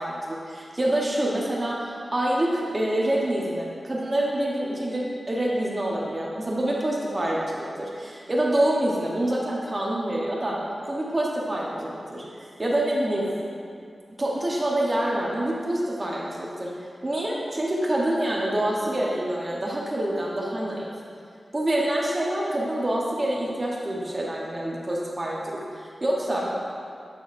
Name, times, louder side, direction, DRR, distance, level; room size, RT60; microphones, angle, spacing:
voice 1, 0.0-10.6 10.9-12.2 12.6-13.3 14.2-16.7 17.0-20.9 21.5-26.5, right 1 dB, 30° right, -4 dB, 0.8 m, -26 dB
8.3 x 6.8 x 2.5 m, 2.4 s
wide cardioid pair, 135°, 0 cm